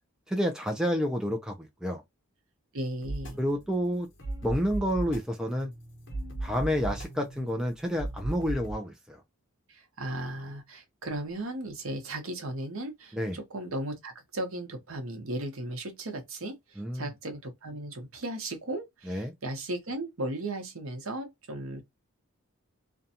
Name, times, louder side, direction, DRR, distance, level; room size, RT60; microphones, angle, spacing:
voice 1, 0.3-2.0 3.4-4.1 4.4-5.7 6.4-9.2 13.1-13.4 16.8-17.0 19.1-19.3, equal, 5° right, 0.3 m, -29 dB
voice 2, 2.7-3.4 9.7-21.8, right 1 dB, 70° right, 0.8 m, -36 dB
sound 1, 3.0-8.7, right 2 dB, 55° left, 1.0 m, -38 dB
2.5 x 2.2 x 2.7 m
head